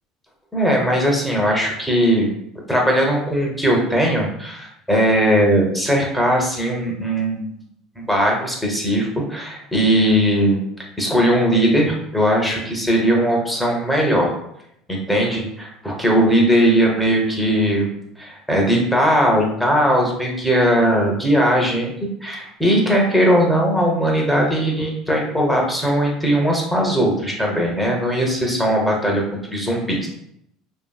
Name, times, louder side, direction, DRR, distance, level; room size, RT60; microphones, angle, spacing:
voice 1, 0.5-2.3 2.7-7.5 8.0-10.6 11.0-14.3 14.9-17.9 18.2-29.2 29.5-30.1, equal, 5° left, -1 dB, 0.6 m, -19 dB
2.6 x 2.6 x 2.2 m, 0.77 s
supercardioid pair, 105°, 0 cm